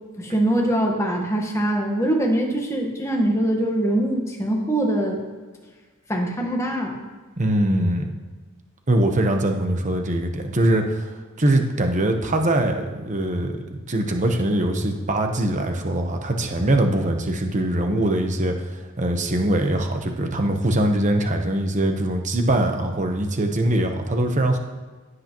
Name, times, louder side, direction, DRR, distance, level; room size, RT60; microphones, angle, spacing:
voice 1, 0.2-5.2 6.1-7.0, right 1 dB, 15° left, 0 dB, 1.4 m, -23 dB
voice 2, 7.4-8.1 8.9-24.6, right 1 dB, 35° right, 4 dB, 1.0 m, -22 dB
16.0 x 7.9 x 3.1 m, 1.3 s
head